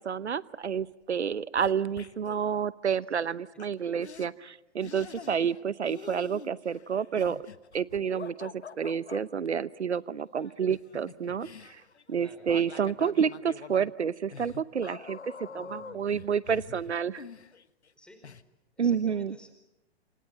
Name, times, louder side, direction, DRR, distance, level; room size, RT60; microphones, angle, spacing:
voice 1, 0.0-7.4 7.7-8.5 8.8-11.8 12.1-15.2 15.5-17.2 18.8-19.3, right 7 dB, 90° right, 19 dB, 0.9 m, -29 dB
sound 1, 0.6-2.4 3.6-3.7 4.0-4.3 4.8-5.6 5.9-9.2 10.4-17.9 18.2-18.4, left 6 dB, 85° left, 1.4 m, -46 dB
voice 2, 12.2-13.0 15.5-16.3 17.9-18.3 18.8-19.5, left 1 dB, 5° left, 6 dB, 4.7 m, -55 dB
27.0 x 27.0 x 7.5 m, 0.90 s
hypercardioid pair, 120°, 33 cm